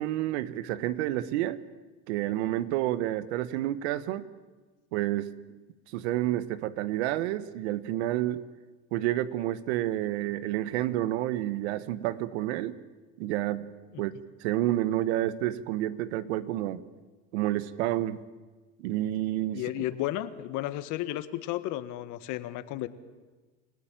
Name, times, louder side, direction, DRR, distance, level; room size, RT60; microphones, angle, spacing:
voice 1, 0.0-1.6 2.1-4.3 4.9-5.3 5.9-8.4 8.9-12.8 13.2-13.6 14.0-16.8 17.3-18.2 18.8-19.8, right 14 dB, 80° right, 14 dB, 1.3 m, -29 dB
voice 2, 19.5-22.9, left 14 dB, 65° left, 13 dB, 1.5 m, -33 dB
29.0 x 16.0 x 9.0 m, 1.3 s
supercardioid pair, 100°, 33 cm